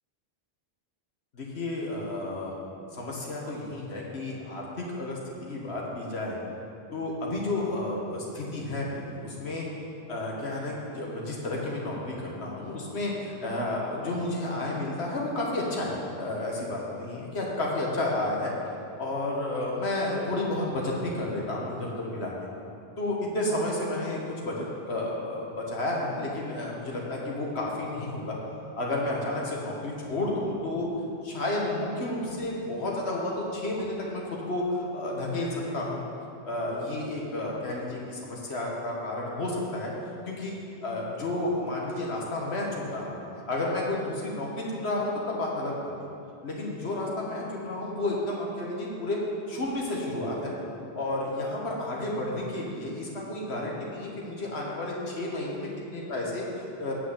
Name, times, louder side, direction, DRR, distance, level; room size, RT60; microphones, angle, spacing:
voice 1, 1.3-2.5 2.9-6.4 6.9-9.7 10.1-12.2 12.4-18.5 19.0-22.3 23.0-28.4 28.8-30.9 31.2-36.0 36.5-39.9 40.3-40.5 40.8-43.1 43.5-45.9 46.4-49.2 49.5-50.5 50.9-56.9, left 2 dB, 80° left, -3 dB, 1.7 m, -31 dB
7.9 x 6.2 x 8.0 m, 2.7 s
omnidirectional pair, 1.1 m